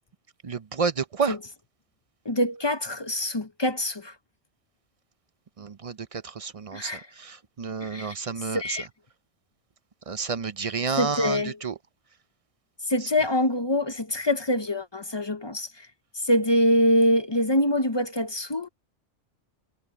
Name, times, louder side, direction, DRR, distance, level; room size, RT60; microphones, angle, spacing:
voice 1, 0.4-1.3 5.6-6.9 7.2-8.6 10.1-11.7, right 5 dB, 40° right, 0.5 m, -30 dB
voice 2, 2.2-4.1 6.7-7.1 7.8-8.9 11.0-11.6 12.8-15.9 16.1-18.7, left 1 dB, 25° left, 0.7 m, -25 dB
omnidirectional pair, 1.2 m